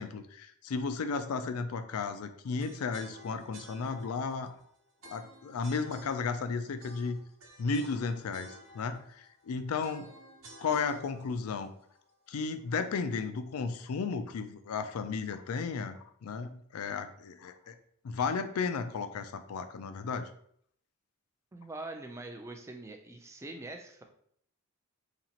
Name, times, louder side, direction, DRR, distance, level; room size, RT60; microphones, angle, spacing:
voice 1, 0.0-4.6 5.0-7.2 7.6-10.1 10.6-11.7 12.3-17.7 18.0-20.3, left 5 dB, 75° left, 9 dB, 0.4 m, -34 dB
sound 1, 2.6-12.7, right 1 dB, 65° right, 0.9 m, -53 dB
voice 2, 21.5-24.0, right 2 dB, 10° right, 4 dB, 0.4 m, -43 dB
4.1 x 2.9 x 2.9 m, 0.66 s
head